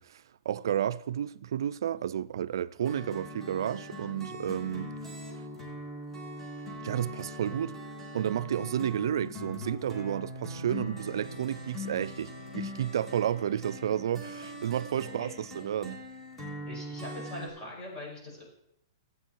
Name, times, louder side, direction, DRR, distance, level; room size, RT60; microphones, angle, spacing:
voice 1, 0.0-4.9 5.3-5.4 6.8-7.7 8.1-16.0, right 10 dB, 70° right, 0.3 m, -31 dB
sound 1, 2.8-17.5, left 1 dB, 5° left, 2.6 m, -41 dB
voice 2, 16.7-18.4, left 1 dB, 30° left, 5.3 m, -42 dB
12.5 x 8.5 x 4.5 m
hypercardioid pair, 145°, 2 cm